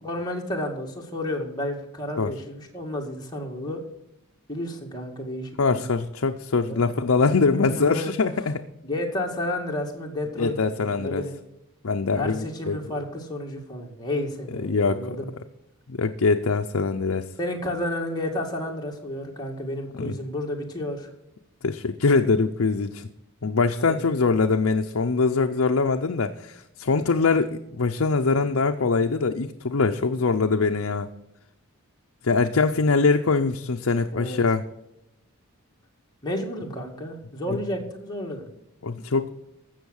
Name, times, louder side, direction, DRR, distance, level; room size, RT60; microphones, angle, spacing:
voice 1, 0.0-3.8 4.5-5.8 6.7-6.8 7.6-8.1 8.8-11.4 12.2-15.3 17.4-21.1 23.8-24.0 34.1-34.4 36.2-38.5, left 1 dB, 20° left, 0 dB, 2.1 m, -31 dB
voice 2, 5.6-8.6 10.4-11.2 11.8-12.8 14.6-15.2 15.9-17.3 20.0-20.2 21.6-23.1 23.4-31.1 32.2-34.6 37.5-37.6 38.8-39.3, left 4 dB, 65° left, 4 dB, 0.6 m, -23 dB
15.5 x 6.4 x 6.5 m, 0.86 s
head